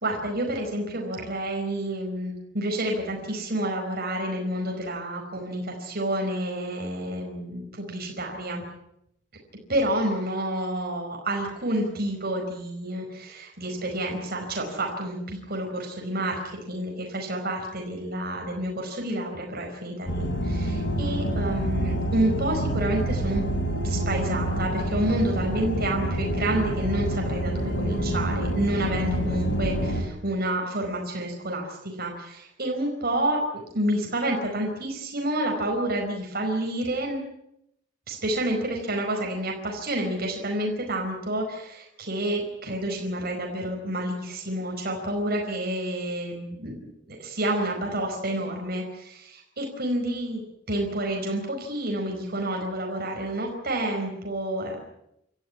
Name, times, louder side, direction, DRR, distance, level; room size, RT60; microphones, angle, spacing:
voice 1, 0.0-8.6 9.7-23.4 23.8-37.2 38.1-46.9 47.2-50.4 50.7-54.8, right 1 dB, 55° right, 1 dB, 4.8 m, -29 dB
sound 1, 20.1-30.0, right 1 dB, 70° left, 5.0 m, -27 dB
27.5 x 14.0 x 9.8 m, 0.80 s
head